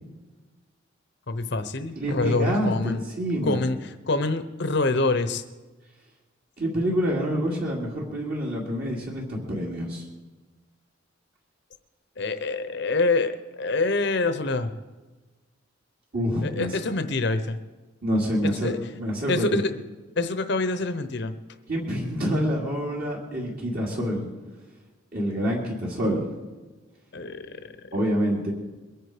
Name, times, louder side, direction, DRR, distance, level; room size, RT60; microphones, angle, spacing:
voice 1, 1.3-3.0 3.4-3.8 4.1-5.4 12.2-14.7 16.4-17.6 18.6-18.8 19.3-19.7 20.2-21.3 27.1-27.9, left 3 dB, 55° left, 10 dB, 0.8 m, -26 dB
voice 2, 2.0-3.6 6.6-10.1 16.1-16.8 18.0-19.6 21.7-24.3 25.1-26.3 27.9-28.5, equal, 50° right, -4 dB, 2.5 m, -27 dB
22.5 x 9.3 x 5.0 m, 1.2 s
head